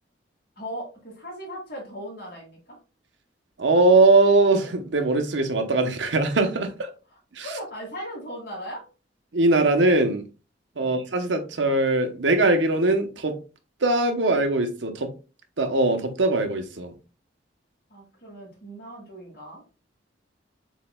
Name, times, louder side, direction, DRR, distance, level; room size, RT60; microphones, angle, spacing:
voice 1, 0.6-2.8 7.4-8.8 10.8-11.0 17.9-19.6, equal, 55° left, 2.7 m, -38 dB
voice 2, 3.6-6.9 7.3-7.5 9.3-10.2 10.8-13.4 13.8-15.1 15.6-16.9, right 2 dB, 90° right, 0.9 m, -21 dB
7.3 x 3.0 x 2.3 m
head